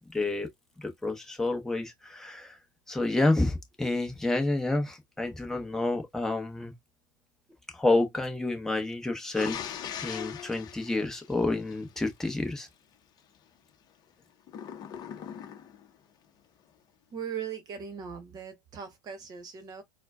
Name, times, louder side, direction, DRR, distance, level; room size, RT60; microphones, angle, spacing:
voice 1, 0.1-0.5 0.8-2.6 2.9-6.7 7.7-9.6 10.0-12.7, left 2 dB, 5° left, 0.9 m, -29 dB
sound 1, 9.3-12.1 14.5-15.9, left 8 dB, 35° left, 0.7 m, -40 dB
voice 2, 17.1-19.8, right 7 dB, 35° right, 1.0 m, -39 dB
4.3 x 2.1 x 2.3 m
hypercardioid pair, 100°, 12 cm